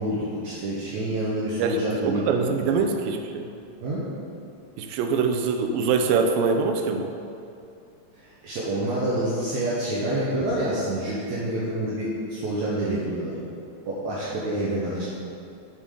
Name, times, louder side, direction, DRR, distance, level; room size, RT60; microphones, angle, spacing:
voice 1, 0.0-2.2 2.6-2.9 3.8-4.0 8.4-13.4 13.9-15.1, right 1 dB, 65° right, -8 dB, 2.2 m, -27 dB
voice 2, 1.6-3.5 4.8-7.1, right 5 dB, 85° right, 5 dB, 2.3 m, -24 dB
7.9 x 7.3 x 3.8 m, 2.6 s
omnidirectional pair, 4.0 m